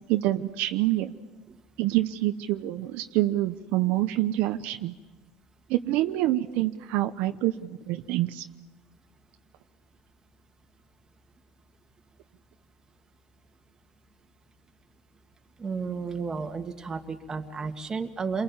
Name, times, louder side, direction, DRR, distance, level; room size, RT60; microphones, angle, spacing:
voice 1, 0.1-1.1 1.8-4.9 5.7-8.4, right 15 dB, 70° right, 8 dB, 1.0 m, -26 dB
voice 2, 15.6-18.4, right 5 dB, 20° right, 5 dB, 2.0 m, -32 dB
29.5 x 23.0 x 7.4 m, 1.2 s
supercardioid pair, 120°, 3 cm